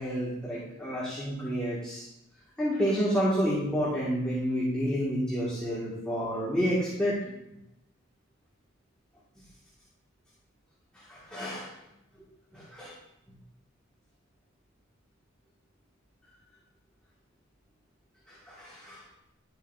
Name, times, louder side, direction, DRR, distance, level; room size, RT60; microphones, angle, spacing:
voice 1, 0.0-2.0 2.6-7.1 11.1-11.7 12.7-12.9 18.5-19.0, equal, 5° left, -9 dB, 2.0 m, -29 dB
12.0 x 7.6 x 2.7 m, 0.86 s
head